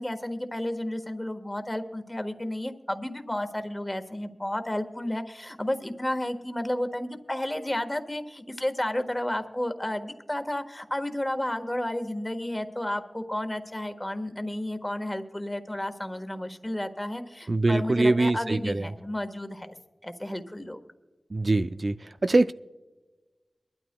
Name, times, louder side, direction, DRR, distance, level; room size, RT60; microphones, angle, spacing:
voice 1, 0.0-19.8 20.0-20.8, left 1 dB, 20° left, 1.3 m, -32 dB
voice 2, 17.5-18.8 21.3-22.0 22.2-22.5, right 2 dB, 55° right, 0.3 m, -23 dB
23.0 x 12.5 x 2.2 m
wide cardioid pair, 60°, 0 cm